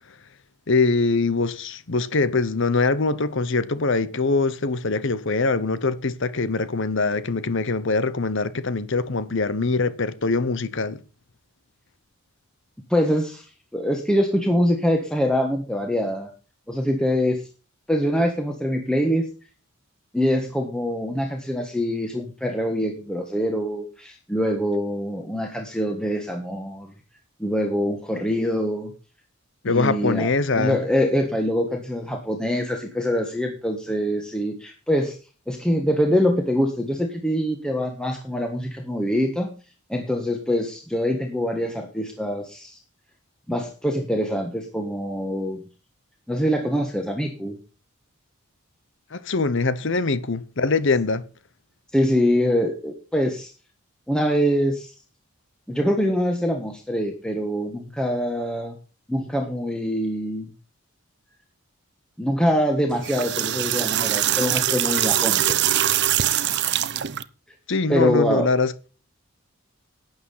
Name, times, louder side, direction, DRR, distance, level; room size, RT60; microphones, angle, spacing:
voice 1, 0.7-11.0 29.6-30.8 49.1-51.2 67.7-68.7, left 3 dB, 55° left, 0.9 m, -23 dB
voice 2, 12.9-13.5 13.7-16.3 16.7-17.4 17.9-19.2 20.1-26.9 27.4-28.9 29.7-30.3 30.5-35.2 35.5-39.5 39.9-42.8 43.5-45.6 46.3-47.6 51.9-53.5 54.1-54.9 55.7-58.8 59.1-60.5 62.2-65.6 67.9-68.5, equal, 5° left, 1.4 m, -24 dB
sound 1, 62.9-67.2, right 12 dB, 50° right, 0.7 m, -23 dB
12.0 x 8.8 x 5.6 m
head